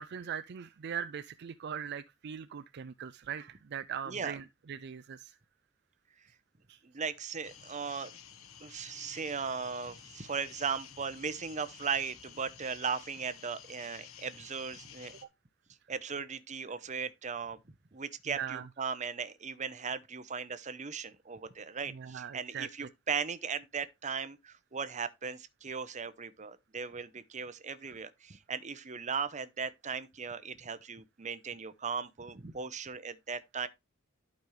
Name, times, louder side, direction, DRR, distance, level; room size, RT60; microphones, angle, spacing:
voice 1, 0.0-5.4 6.7-6.8 18.3-18.6 21.9-22.9, right 8 dB, 55° right, 0.4 m, -40 dB
voice 2, 4.1-4.4 6.8-8.1 8.6-15.1 15.9-17.6 17.9-33.7, right 6 dB, 35° right, 0.8 m, -37 dB
sound 1, 7.4-15.2, left 8 dB, 85° left, 1.2 m, -52 dB
11.5 x 5.3 x 3.2 m
head